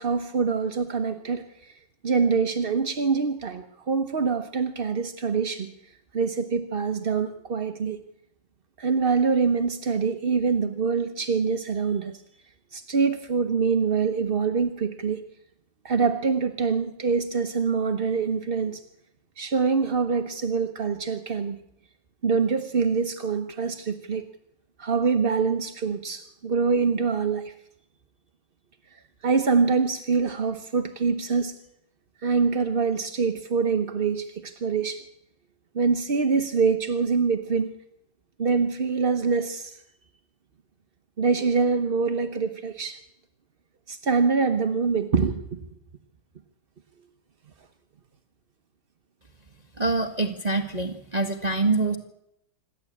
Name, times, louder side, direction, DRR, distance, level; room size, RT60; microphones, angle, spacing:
voice 1, 0.0-1.7 2.0-5.7 6.1-8.0 8.8-12.1 12.7-15.2 15.8-18.8 19.4-21.6 22.2-24.2 24.8-27.5 29.2-31.6 32.2-35.0 35.7-37.7 38.4-39.8 41.2-43.0 43.9-45.6, right 5 dB, 40° right, 6 dB, 0.8 m, -25 dB
voice 2, 49.8-52.0, right 3 dB, 20° right, 6 dB, 1.3 m, -25 dB
26.5 x 13.0 x 8.6 m, 0.81 s
omnidirectional pair, 2.4 m